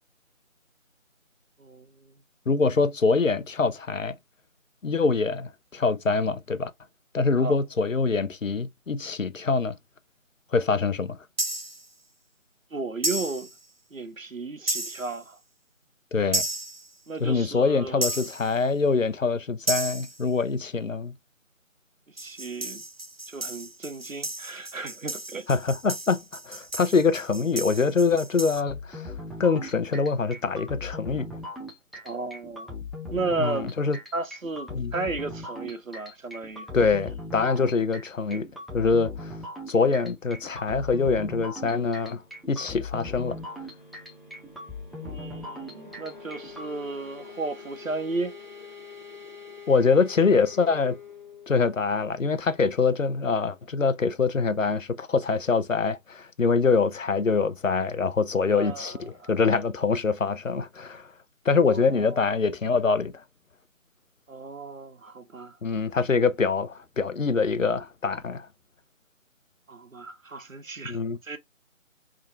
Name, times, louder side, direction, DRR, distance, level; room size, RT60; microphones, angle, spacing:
voice 1, 1.6-2.1 7.4-7.6 12.7-13.5 13.9-15.4 17.1-18.1 22.2-22.8 23.3-25.5 32.0-32.7 33.1-33.7 34.1-36.7 45.0-48.4 58.5-59.3 61.7-62.2 64.3-65.6 69.7-71.0 71.2-71.4, right 3 dB, 75° right, 1.0 m, -34 dB
voice 2, 2.5-4.1 4.8-6.7 7.1-9.7 10.5-11.2 16.1-16.5 17.2-21.1 25.5-29.1 29.4-31.3 33.4-34.0 34.7-34.9 36.7-38.5 38.7-39.3 39.7-42.2 42.5-43.4 49.7-51.0 51.5-61.1 61.5-63.1 65.6-68.5 70.9-71.2, left 4 dB, 70° left, 0.7 m, -24 dB
sound 1, 11.4-11.9 13.0-13.5 14.7-15.2 16.3-16.9 18.0-18.6 19.7-20.2 22.2-28.6, right 2 dB, 50° right, 0.5 m, -33 dB
sound 2, 28.6-46.7, left 2 dB, ahead, 0.5 m, -39 dB
sound 3, 41.8-54.1, left 5 dB, 35° left, 0.8 m, -47 dB
3.7 x 2.5 x 4.4 m
figure-of-eight pair, 165°, 40 cm